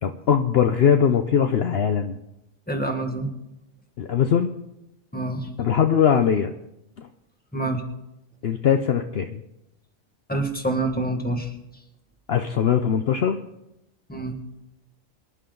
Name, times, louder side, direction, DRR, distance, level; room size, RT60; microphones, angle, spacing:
voice 1, 0.0-2.2 4.0-4.5 5.6-6.5 7.0-7.1 8.4-9.4 12.3-13.4, left 8 dB, 55° left, 7 dB, 0.8 m, -21 dB
voice 2, 2.7-3.3 5.1-5.5 7.5-7.8 10.3-11.5 14.1-14.3, right 2 dB, 5° left, 4 dB, 1.5 m, -26 dB
24.5 x 11.0 x 3.9 m, 0.89 s
omnidirectional pair, 1.3 m